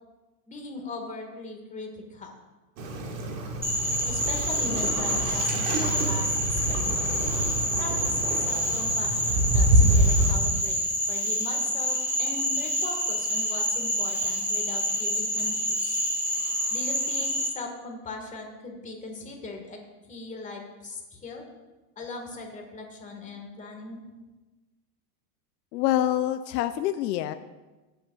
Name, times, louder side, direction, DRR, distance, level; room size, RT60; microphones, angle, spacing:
voice 1, 0.5-2.4 4.1-7.1 7.8-10.8 11.1-16.0 16.7-21.4 22.0-24.0, left 3 dB, 15° left, 1 dB, 1.7 m, -39 dB
Waves surf, 2.8-10.4, right 1 dB, 60° right, 2.0 m, -26 dB
Frog, 3.6-17.5, equal, 5° right, 1.8 m, -27 dB
voice 2, 25.7-27.3, left 13 dB, 75° left, 10 dB, 0.6 m, -26 dB
14.5 x 7.9 x 2.4 m, 1.2 s
supercardioid pair, 130°, 49 cm